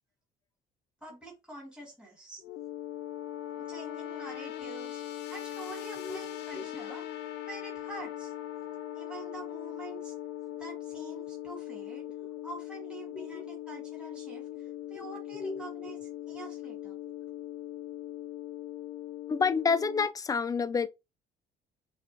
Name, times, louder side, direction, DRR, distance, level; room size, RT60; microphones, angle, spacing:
voice 1, 1.0-2.4 3.6-5.0 5.3-7.2 7.4-8.3 8.9-10.1 10.6-12.1 12.4-17.0, right 2 dB, 5° right, 1.8 m, -46 dB
sad bit one, 2.4-20.1, left 12 dB, 85° left, 0.5 m, -40 dB
voice 2, 13.1-13.5 15.3-15.6 19.3-20.9, left 5 dB, 20° left, 0.3 m, -29 dB
5.9 x 2.4 x 2.7 m
cardioid pair, 110°, 17 cm